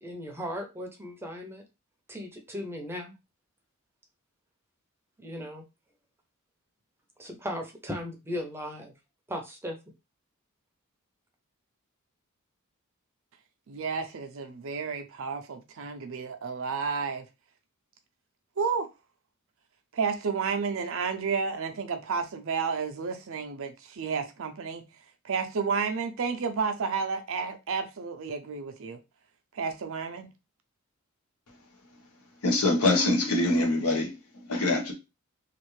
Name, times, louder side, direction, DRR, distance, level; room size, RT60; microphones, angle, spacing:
voice 1, 0.0-1.6 2.1-3.1 5.2-5.6 7.2-8.9 9.3-9.7, equal, 10° right, 0.7 m, -37 dB
voice 2, 13.7-17.2 18.6-18.9 19.9-24.8 25.2-29.0 29.5-30.3, right 5 dB, 65° right, 0.6 m, -31 dB
voice 3, 32.4-34.9, left 2 dB, 80° left, 1.1 m, -25 dB
3.2 x 2.5 x 3.1 m
head